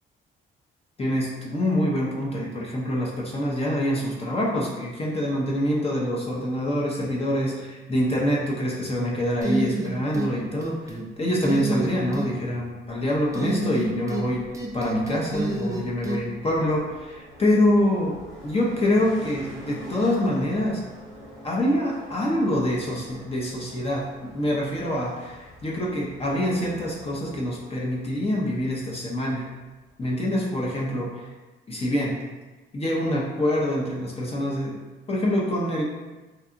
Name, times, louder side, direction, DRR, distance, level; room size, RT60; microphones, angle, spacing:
voice 1, 1.0-14.4 14.7-18.2 18.4-20.8 21.4-29.4 30.0-31.2 31.7-32.2 32.7-34.8 35.1-35.8, left 1 dB, 30° left, -3 dB, 0.6 m, -25 dB
sound 1, 9.4-10.3 10.6-11.1 11.4-12.3 13.3-14.3 14.5-16.2, right 2 dB, 15° right, 0.4 m, -28 dB
sound 2, 13.1-30.0, equal, 85° left, 1.4 m, -46 dB
2.7 x 2.3 x 2.4 m, 1.2 s
cardioid pair, 90°, 20 cm